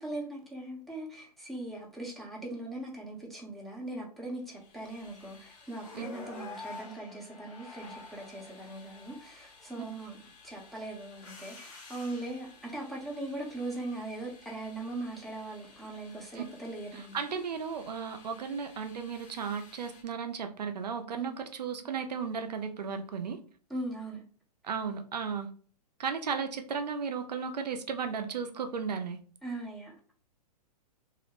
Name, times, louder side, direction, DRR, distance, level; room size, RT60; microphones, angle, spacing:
voice 1, 0.0-10.2 10.4-17.2 21.1-21.4 23.7-24.2 29.4-29.9, right 2 dB, ahead, 0.6 m, -40 dB
sound 1, 4.5-20.0, left 3 dB, 45° left, 0.8 m, -51 dB
voice 2, 16.9-23.4 24.6-25.5 26.0-29.2, right 6 dB, 80° right, 0.4 m, -35 dB
2.4 x 2.1 x 2.9 m
figure-of-eight pair, 110°, 21 cm